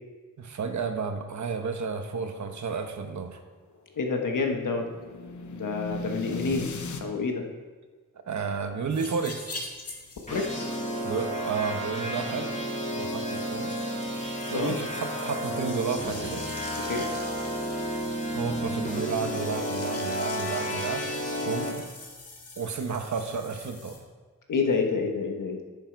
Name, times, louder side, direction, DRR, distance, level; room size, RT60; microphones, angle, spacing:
voice 1, 0.4-3.4 6.3-6.6 8.3-9.6 11.0-12.6 12.9-13.7 14.5-16.4 18.3-21.1 21.4-21.9 22.6-24.0, right 5 dB, 65° right, 6 dB, 1.1 m, -32 dB
sound 1, 3.7-7.0, left 2 dB, 70° left, 0.9 m, -38 dB
voice 2, 4.0-4.9 5.5-6.7 7.0-7.4 10.3-10.7 14.5-14.7 16.9-17.1 24.5-25.6, left 4 dB, 85° left, 3 dB, 1.4 m, -28 dB
sound 2, 8.9-24.0, left 2 dB, 50° left, 1.8 m, -44 dB
sound 3, 10.3-21.7, equal, 25° left, 2.3 m, -32 dB
10.5 x 8.4 x 4.6 m, 1.4 s
wide cardioid pair, 175°, 31 cm